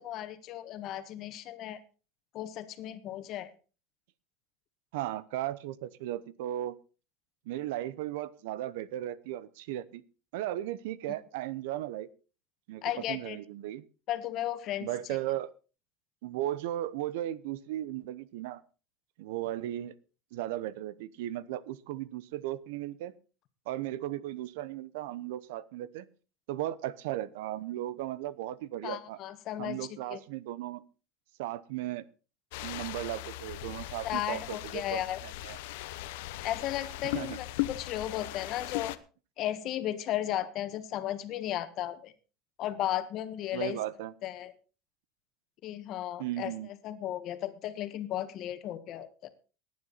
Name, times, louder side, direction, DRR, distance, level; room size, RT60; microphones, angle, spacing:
voice 1, 0.0-1.8 2.3-3.5 12.8-13.4 14.1-14.9 28.8-29.8 30.1-30.2 34.0-35.2 36.4-38.9 39.4-42.1 42.6-43.8 44.2-44.5 45.6-46.5 46.8-49.3, left 12 dB, 45° left, 10 dB, 1.5 m, -35 dB
voice 2, 4.9-6.8 7.5-10.0 10.3-12.1 12.7-12.8 13.1-13.8 14.8-15.5 16.2-18.6 19.2-19.9 20.3-23.1 23.7-26.1 26.5-29.2 29.6-30.8 31.4-32.0 32.6-35.6 37.1-37.4 43.5-44.1 46.2-46.7, right 13 dB, 85° right, 19 dB, 0.8 m, -36 dB
sound 1, 32.5-39.0, left 17 dB, 85° left, 0.9 m, -38 dB
18.0 x 9.5 x 4.1 m, 0.35 s
supercardioid pair, 145°, 0 cm